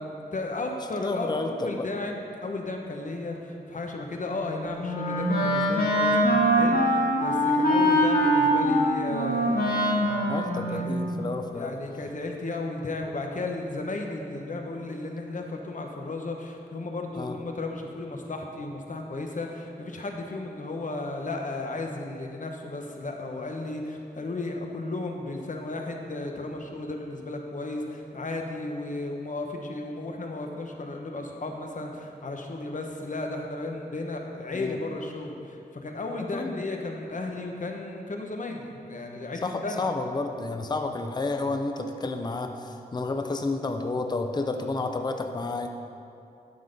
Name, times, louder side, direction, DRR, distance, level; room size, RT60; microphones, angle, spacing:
voice 1, 0.0-10.9 11.5-39.9, left 2 dB, 50° left, 2 dB, 0.9 m, -34 dB
voice 2, 1.0-1.9 10.3-11.7 17.2-17.4 34.5-34.8 36.3-36.6 39.4-45.7, left 3 dB, 25° left, 5 dB, 0.5 m, -30 dB
Wind instrument woodwind instrument, 4.3-11.5, equal, 70° left, 1.4 m, -23 dB
11.5 x 3.9 x 5.2 m, 2.6 s
wide cardioid pair, 80°, 17 cm